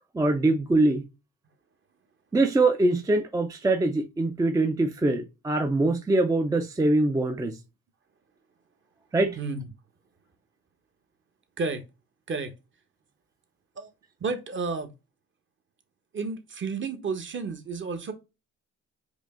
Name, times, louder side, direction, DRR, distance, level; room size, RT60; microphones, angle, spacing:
voice 1, 0.1-1.0 2.3-7.6 9.1-9.4, right 2 dB, 10° right, 0.4 m, -23 dB
voice 2, 14.2-14.9 16.1-18.1, right 4 dB, 40° right, 1.0 m, -31 dB
5.1 x 2.0 x 3.5 m
cardioid pair, 90°, 30 cm